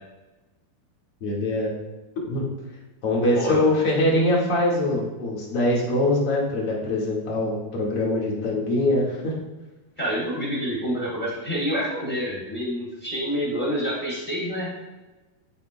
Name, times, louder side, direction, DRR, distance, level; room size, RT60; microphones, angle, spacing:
voice 1, 1.2-1.7 2.2-2.4 3.0-9.3, left 1 dB, 45° left, -3 dB, 2.3 m, -23 dB
voice 2, 3.3-3.6 10.0-14.7, equal, 15° left, -6 dB, 2.0 m, -27 dB
12.0 x 8.8 x 2.2 m, 1.1 s
omnidirectional pair, 4.3 m